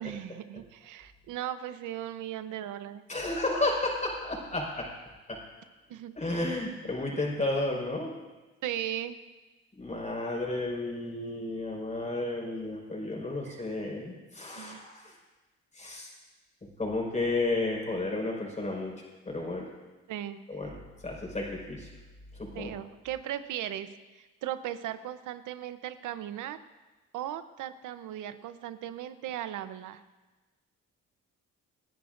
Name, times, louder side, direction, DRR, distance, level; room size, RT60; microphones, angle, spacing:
voice 1, 0.0-3.0 5.9-6.1 8.6-9.1 13.5-13.6 14.6-14.8 20.1-20.7 22.5-23.9 24.1-26.6 27.1-30.0, right 11 dB, 85° right, 11 dB, 0.9 m, -37 dB
voice 2, 3.1-4.9 5.3-5.4 6.2-8.1 9.7-15.1 15.7-16.1 16.8-18.9 19.2-19.7 20.5-21.9 22.3-22.7, left 2 dB, 25° left, -1 dB, 5.0 m, -32 dB
29.0 x 10.5 x 2.6 m, 1.2 s
cardioid pair, 90°, 30 cm